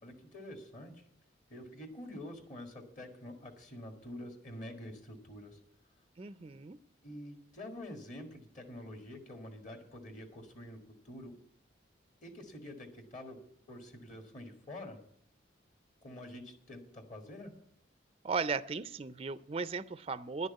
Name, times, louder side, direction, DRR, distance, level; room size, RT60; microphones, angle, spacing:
voice 1, 0.0-1.0 1.5-5.6 7.0-11.4 12.2-13.4 13.7-15.0 16.0-17.5, left 1 dB, 40° left, 4 dB, 1.8 m, -47 dB
voice 2, 6.2-6.8 18.2-20.5, right 4 dB, 30° right, 14 dB, 0.4 m, -36 dB
10.5 x 6.4 x 9.0 m, 0.65 s
head